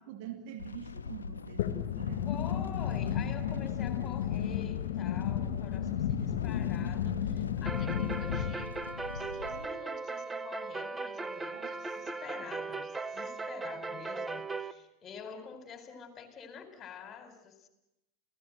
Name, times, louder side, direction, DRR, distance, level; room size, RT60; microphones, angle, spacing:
voice 1, 0.0-2.3 3.4-3.7 11.4-11.7 12.0-12.1, right 10 dB, 60° right, 6 dB, 2.4 m, -46 dB
sound 1, 0.6-9.7, left 5 dB, 85° left, 1.1 m, -43 dB
sound 2, 1.6-8.5, left 10 dB, 65° left, 1.9 m, -32 dB
voice 2, 2.3-17.7, left 6 dB, 35° left, 8 dB, 4.4 m, -47 dB
sound 3, 7.7-14.7, right 3 dB, 15° right, 1.0 m, -38 dB
29.0 x 17.0 x 9.1 m, 0.92 s
hypercardioid pair, 85°, 0 cm